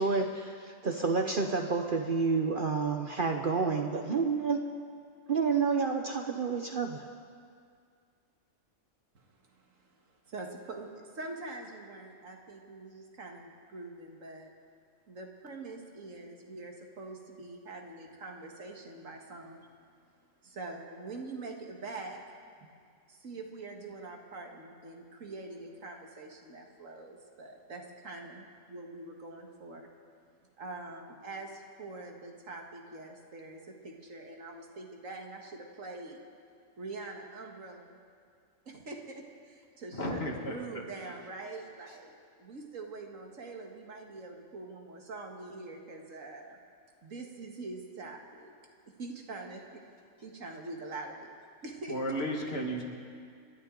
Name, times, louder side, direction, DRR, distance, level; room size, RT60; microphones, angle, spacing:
voice 1, 0.0-4.6 5.3-7.1, right 4 dB, 45° right, 4 dB, 0.9 m, -29 dB
voice 2, 9.1-14.5 15.1-19.7 20.4-22.2 22.6-22.7 23.1-29.9 30.6-36.2 36.8-38.0 38.7-40.2 40.5-46.6 47.0-48.5 49.0-49.8 50.2-51.3 51.6-52.0, right 3 dB, 80° right, 2 dB, 2.0 m, -44 dB
voice 3, 39.9-40.7 41.0-41.1 51.9-52.8, equal, 50° left, 0 dB, 2.1 m, -33 dB
28.5 x 12.0 x 3.8 m, 2.2 s
omnidirectional pair, 1.3 m